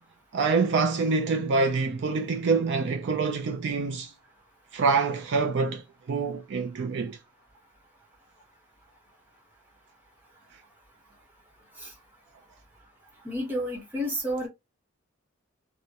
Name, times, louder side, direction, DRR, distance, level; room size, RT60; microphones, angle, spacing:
voice 1, 0.3-4.1 4.7-5.8 6.1-7.2, right 4 dB, 55° right, 0.3 m, -26 dB
voice 2, 13.2-14.5, equal, 10° right, 0.9 m, -30 dB
2.3 x 2.1 x 2.7 m
head